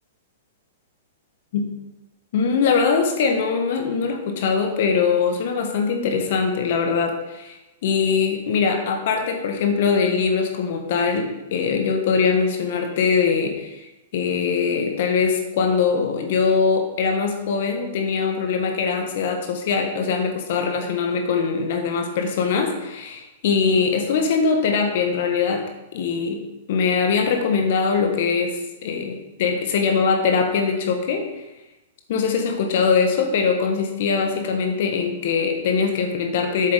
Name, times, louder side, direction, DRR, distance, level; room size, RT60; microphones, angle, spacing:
voice 1, 2.3-7.6 7.8-25.6 25.9-26.4 26.7-31.3 32.1-36.7, left 5 dB, 60° left, 4 dB, 1.5 m, -22 dB
8.1 x 7.2 x 3.8 m, 1.0 s
hypercardioid pair, 110°, 0 cm